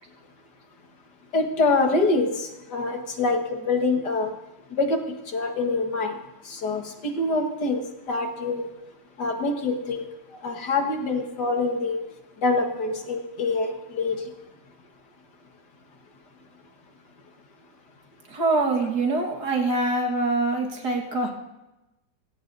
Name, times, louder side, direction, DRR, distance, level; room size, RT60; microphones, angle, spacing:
voice 1, 1.3-4.3 4.8-5.0 5.3-6.2 6.4-8.7 9.2-10.1 10.4-12.0 12.4-14.2, left 3 dB, 65° left, 4 dB, 2.2 m, -25 dB
voice 2, 18.3-21.3, right 2 dB, 65° right, 1 dB, 2.3 m, -24 dB
23.0 x 16.0 x 2.7 m, 0.99 s
omnidirectional pair, 1.9 m